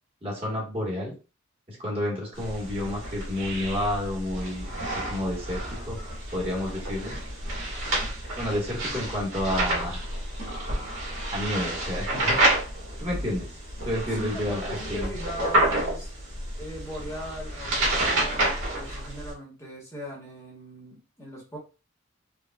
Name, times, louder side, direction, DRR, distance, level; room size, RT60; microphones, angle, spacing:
voice 1, 0.2-1.1 1.7-6.0 6.3-7.1 8.4-10.1 11.3-12.4 13.0-13.5 13.8-15.1, left 1 dB, 25° right, -4 dB, 1.3 m, -30 dB
sound 1, 2.4-19.3, right 1 dB, 70° right, 1.6 m, -29 dB
voice 2, 14.1-16.1 16.6-21.6, equal, 15° left, -4 dB, 1.1 m, -39 dB
4.6 x 2.3 x 2.3 m, 0.32 s
head